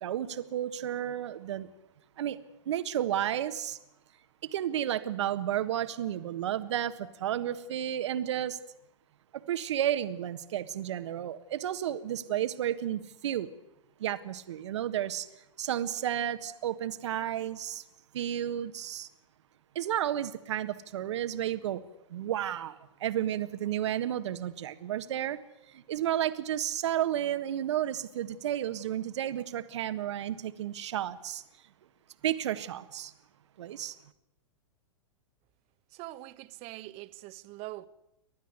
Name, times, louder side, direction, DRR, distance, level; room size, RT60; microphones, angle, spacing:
voice 1, 0.0-1.7 2.2-2.4 2.6-3.8 4.4-8.6 9.3-13.5 14.0-15.3 15.6-17.8 18.1-19.1 19.7-21.8 22.1-25.4 25.7-31.4 32.2-33.1 33.6-33.9, right 11 dB, 65° right, 1.6 m, -32 dB
voice 2, 35.9-37.9, right 18 dB, 40° right, 1.4 m, -43 dB
29.5 x 12.5 x 9.5 m
hypercardioid pair, 110°, 16 cm